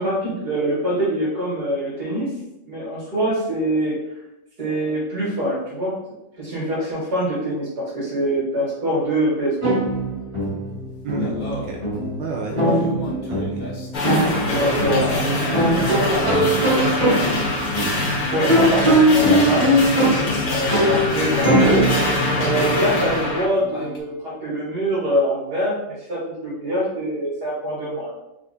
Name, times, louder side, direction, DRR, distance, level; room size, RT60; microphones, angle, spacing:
voice 1, 0.0-2.3 2.6-4.0 4.6-6.0 6.4-9.8 12.5-12.8 14.5-15.2 18.3-19.7 20.4-21.9 22.3-25.8 26.1-28.1, right 1 dB, 55° right, -7 dB, 2.2 m, -24 dB
sound 1, 9.6-23.2, right 1 dB, 25° right, 0.6 m, -21 dB
sound 2, 9.9-23.0 23.3-24.0, left 1 dB, 45° left, 0.6 m, -34 dB
voice 2, 11.0-11.8 12.2-12.8 13.3-13.6 14.5-16.9, right 4 dB, 75° right, 0 dB, 1.2 m, -31 dB
sound 3, 13.9-23.5, left 2 dB, 85° left, 0.4 m, -24 dB
4.4 x 2.4 x 4.2 m, 0.90 s
omnidirectional pair, 2.0 m